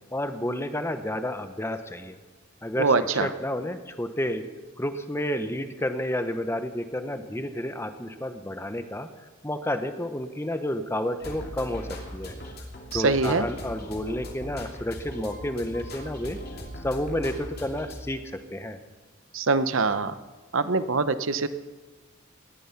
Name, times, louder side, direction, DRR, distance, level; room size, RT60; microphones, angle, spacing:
voice 1, 0.1-2.2 2.6-2.9 3.2-4.5 4.8-9.1 9.4-12.3 12.9-16.4 16.8-18.8, left 1 dB, 10° left, 9 dB, 0.9 m, -30 dB
voice 2, 2.8-3.3 12.9-13.5 19.3-20.2 20.5-21.5, right 4 dB, 65° right, 12 dB, 0.8 m, -23 dB
sound 1, 11.2-18.0, left 1 dB, 45° left, 2.8 m, -39 dB
19.0 x 13.5 x 5.8 m, 1.2 s
head